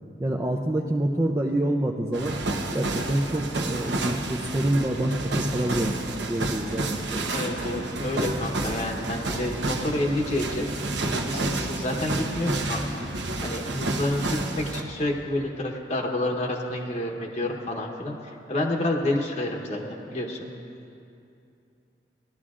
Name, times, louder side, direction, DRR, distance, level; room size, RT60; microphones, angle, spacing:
voice 1, 0.2-2.3 2.7-7.5, right 1 dB, 15° right, -1 dB, 0.4 m, -27 dB
sound 1, 2.1-14.8, right 2 dB, 75° right, 0.9 m, -30 dB
voice 2, 7.3-10.7 11.1-13.0 13.4-20.5, left 1 dB, 40° left, 0 dB, 1.0 m, -29 dB
18.5 x 12.5 x 2.5 m, 2.6 s
head